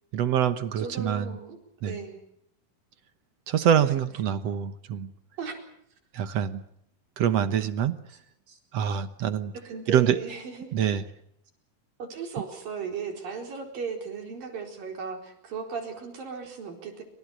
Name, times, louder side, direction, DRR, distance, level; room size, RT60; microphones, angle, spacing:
voice 1, 0.1-1.3 1.8-2.0 3.5-5.1 6.1-6.6 7.2-8.0 8.7-9.5 9.9-10.2 10.7-11.0, right 9 dB, 60° right, 12 dB, 1.8 m, -25 dB
voice 2, 0.8-1.6 1.9-2.2 3.8-4.1 5.4-5.6 8.5-8.6 9.5-10.7 12.0-17.0, right 5 dB, 80° right, 4 dB, 6.2 m, -36 dB
28.0 x 26.0 x 6.2 m, 0.72 s
omnidirectional pair, 4.0 m